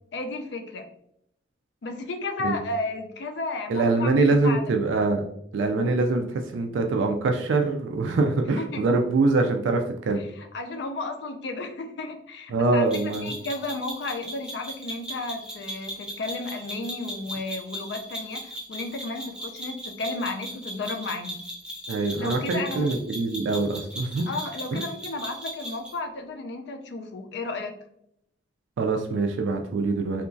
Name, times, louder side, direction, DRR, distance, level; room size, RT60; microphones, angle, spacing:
voice 1, 0.1-0.9 1.8-4.7 8.6-8.9 10.2-21.4 22.2-22.9 24.3-27.7, left 2 dB, 65° left, 5 dB, 0.4 m, -33 dB
voice 2, 3.7-5.2 5.5-10.2 12.5-13.3 21.9-24.3 24.7-24.8 28.8-30.3, right 3 dB, 80° right, 4 dB, 0.3 m, -24 dB
sound 1, 12.9-26.0, equal, 5° right, 0.4 m, -38 dB
2.9 x 2.3 x 2.5 m, 0.73 s
head